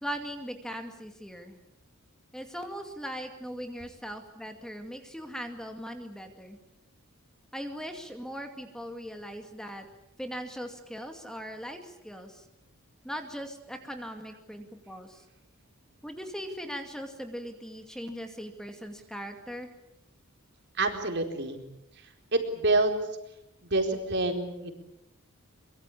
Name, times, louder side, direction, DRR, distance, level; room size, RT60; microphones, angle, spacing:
voice 1, 0.0-1.6 2.3-6.6 7.5-9.9 10.2-12.4 13.0-15.2 16.0-19.7, equal, 5° left, 5 dB, 2.3 m, -39 dB
voice 2, 20.8-21.6 22.3-23.0 23.6-24.7, right 2 dB, 55° right, 5 dB, 4.3 m, -27 dB
24.0 x 23.5 x 8.6 m, 0.85 s
head